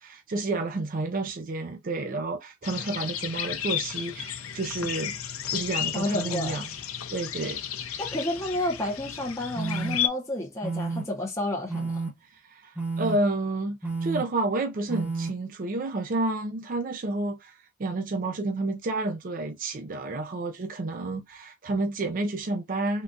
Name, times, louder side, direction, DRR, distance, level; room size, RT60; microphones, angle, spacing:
voice 1, 0.0-5.2 5.5-6.7 7.1-7.6 12.5-23.0, right 2 dB, 40° right, 0.4 m, -30 dB
sound 1, 2.6-10.1, left 10 dB, 80° left, 0.6 m, -33 dB
voice 2, 5.9-6.6 8.0-12.0, left 1 dB, 15° left, 0.6 m, -30 dB
sound 2, 9.5-10.0 10.6-11.0 11.7-12.1 12.7-13.2 13.8-14.2 14.9-15.3, right 3 dB, 10° right, 0.9 m, -30 dB
3.6 x 2.2 x 2.5 m
head